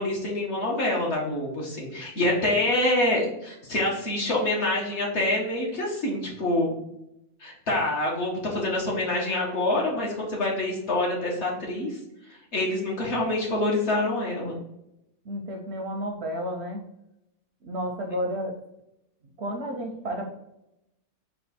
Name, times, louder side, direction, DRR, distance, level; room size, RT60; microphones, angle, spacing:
voice 1, 0.0-6.8 7.4-12.0 12.5-14.6, left 1 dB, 55° left, -2 dB, 1.3 m, -26 dB
voice 2, 15.3-16.8 17.6-18.5 19.4-20.3, equal, 60° right, 2 dB, 0.7 m, -31 dB
4.3 x 2.3 x 4.1 m, 0.85 s
omnidirectional pair, 1.5 m